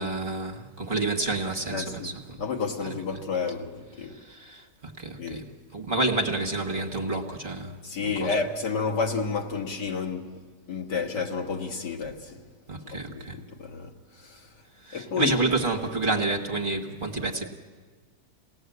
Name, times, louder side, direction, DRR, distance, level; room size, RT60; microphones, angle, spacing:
voice 1, 0.0-2.4 4.1-7.8 8.0-8.3 12.7-13.4 14.8-17.5, right 2 dB, 30° right, 1.5 m, -29 dB
voice 2, 1.7-2.1 2.4-4.2 5.2-5.4 7.8-10.4 10.7-12.4 12.9-14.5 14.9-15.4, left 5 dB, 80° left, 2.5 m, -31 dB
28.5 x 19.0 x 8.0 m
omnidirectional pair, 1.8 m